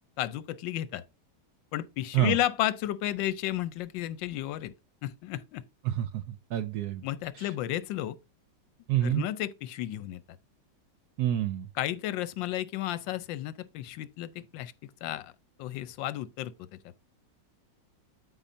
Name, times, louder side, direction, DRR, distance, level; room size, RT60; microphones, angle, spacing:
voice 1, 0.2-1.0 1.7-4.7 5.0-5.6 7.0-8.2 9.0-10.2 11.8-15.3 15.6-16.8, left 13 dB, 85° left, 1.3 m, -33 dB
voice 2, 5.8-7.0 7.3-7.5 8.9-9.3 11.2-11.7, right 12 dB, 70° right, 1.0 m, -28 dB
12.5 x 4.3 x 2.6 m
omnidirectional pair, 2.0 m